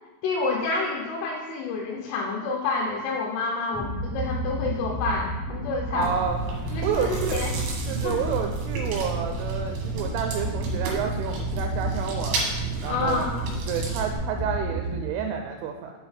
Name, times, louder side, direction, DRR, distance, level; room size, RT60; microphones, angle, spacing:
voice 1, 0.2-6.2 6.7-7.6 8.0-8.2 12.9-13.3, left 3 dB, 90° left, 0 dB, 3.3 m, -28 dB
sound 1, 3.7-15.0, right 1 dB, 30° right, 0.6 m, -33 dB
voice 2, 5.9-6.4 6.8-7.5 7.9-12.4 12.8-13.3 13.7-15.9, right 7 dB, 85° right, 4 dB, 3.0 m, -30 dB
Chewing mastication, 6.0-14.2, right 4 dB, 65° right, 3.1 m, -31 dB
7.1 x 5.8 x 4.3 m, 1.2 s
omnidirectional pair, 5.6 m